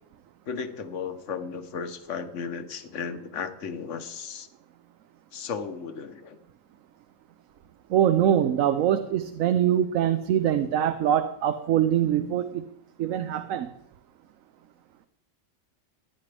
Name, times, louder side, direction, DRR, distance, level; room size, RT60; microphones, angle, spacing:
voice 1, 0.5-4.5 5.3-6.4, left 6 dB, 70° left, 10 dB, 1.2 m, -35 dB
voice 2, 7.9-12.7 13.0-13.7, right 10 dB, 90° right, 9 dB, 1.0 m, -23 dB
15.5 x 9.7 x 3.3 m, 0.81 s
omnidirectional pair, 1.3 m